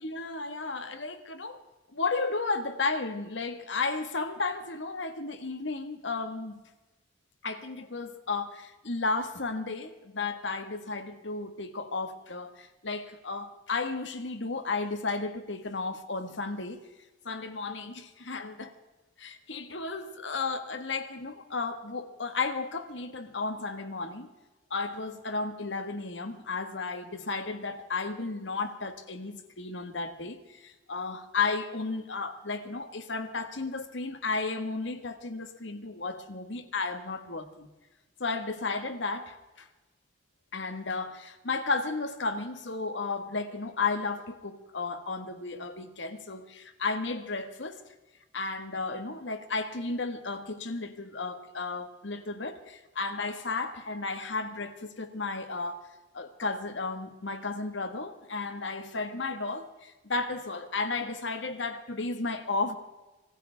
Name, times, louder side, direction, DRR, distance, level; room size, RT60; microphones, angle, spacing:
voice 1, 0.0-1.6 1.9-6.6 7.4-16.8 17.2-18.7 19.2-24.3 24.7-37.7 38.2-39.7 40.5-47.8 48.3-55.9 56.1-62.8, left 3 dB, 75° left, 1.6 m, -33 dB
25.0 x 15.0 x 3.5 m
head